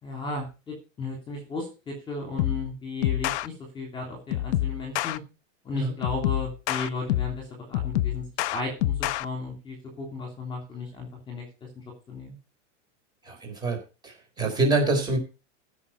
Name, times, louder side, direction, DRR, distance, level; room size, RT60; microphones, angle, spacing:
voice 1, 0.0-5.2 5.6-8.2 8.5-12.4, left 3 dB, 15° left, 2 dB, 3.0 m, -35 dB
sound 1, 2.4-2.7 3.0-3.5 4.3-5.2 6.0-7.4 7.7-9.2, left 14 dB, 65° left, 0.7 m, -27 dB
voice 2, 13.2-15.2, right 2 dB, 10° right, 2 dB, 3.9 m, -26 dB
15.5 x 6.1 x 5.8 m, 0.31 s
supercardioid pair, 180°, 37 cm